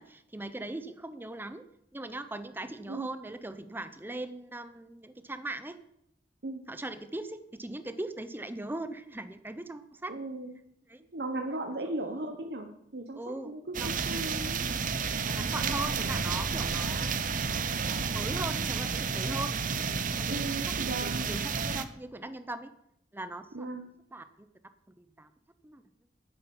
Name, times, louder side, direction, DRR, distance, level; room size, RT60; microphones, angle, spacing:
voice 1, 0.0-1.6 1.9-5.8 6.7-10.2 10.9-11.0 11.5-11.6 11.8-12.3 13.1-13.5 13.8-14.1 15.2-17.5 17.9-19.6 20.2-20.3 20.7-22.7 23.1-23.7 24.1-24.5 25.0-25.3 25.6-25.8, right 2 dB, 10° right, 11 dB, 0.7 m, -40 dB
voice 2, 10.1-10.5 11.1-14.6 20.3-21.3 23.5-23.9, right 2 dB, 65° right, 3 dB, 1.1 m, -37 dB
sound 1, 13.7-21.8, right 5 dB, 50° right, 0.8 m, -31 dB
10.0 x 7.7 x 7.2 m, 0.78 s
head